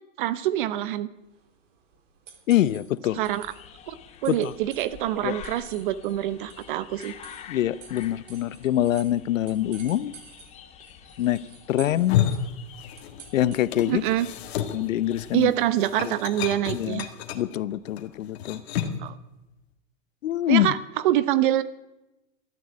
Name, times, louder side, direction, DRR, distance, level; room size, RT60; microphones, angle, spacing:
voice 1, 0.2-1.1 3.2-3.5 3.9-4.0 4.2-7.1 13.9-14.3 15.3-17.1 19.0-19.2 20.5-20.8 21.0-21.6, right 13 dB, 40° right, 0.9 m, -25 dB
sound 1, 1.2-14.0, right 7 dB, 65° right, 3.5 m, -51 dB
voice 2, 2.5-3.2 4.3-4.5 5.2-5.4 7.5-10.1 11.2-11.4 11.7-12.3 13.3-14.0 14.7-15.5 16.0-16.1 16.7-17.0 17.3-18.6 20.2-20.7, left 13 dB, 75° left, 0.8 m, -24 dB
sound 2, 3.1-15.5, left 9 dB, 15° left, 0.9 m, -48 dB
sound 3, 11.9-13.3 13.5-19.1, left 10 dB, 50° left, 1.9 m, -31 dB
13.0 x 10.5 x 9.7 m
supercardioid pair, 160°, 39 cm